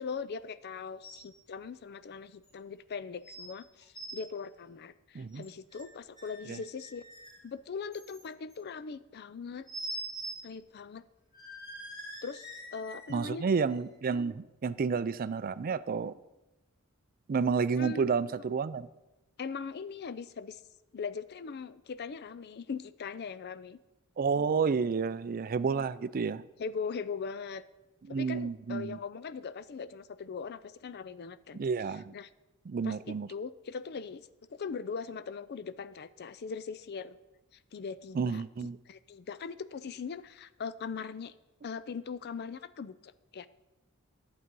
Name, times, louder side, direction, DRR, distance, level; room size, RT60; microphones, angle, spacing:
voice 1, 0.0-7.0 7.4-9.7 10.4-11.0 12.2-12.5 12.7-13.4 17.8-18.1 19.4-20.6 20.9-23.8 25.7-25.9 26.6-27.6 28.1-31.6 31.9-32.3 32.8-37.2 37.7-38.4 38.9-41.3 41.6-43.5, left 5 dB, 50° left, 15 dB, 0.4 m, -40 dB
sound 1, 1.0-1.3 1.6-1.7 2.4-2.5 3.2-3.5 3.8-4.2 5.3-5.8 6.2-7.4 7.9-8.5 9.7-10.4 10.8-10.9 11.3-13.1 13.7-13.8, right 1 dB, 20° left, 2.4 m, -43 dB
voice 2, 13.1-16.1 17.3-18.9 24.2-26.4 28.1-29.0 31.5-32.1 32.7-33.3 38.1-38.8, right 5 dB, 40° right, 15 dB, 0.4 m, -30 dB
11.5 x 7.8 x 5.3 m, 1.0 s
head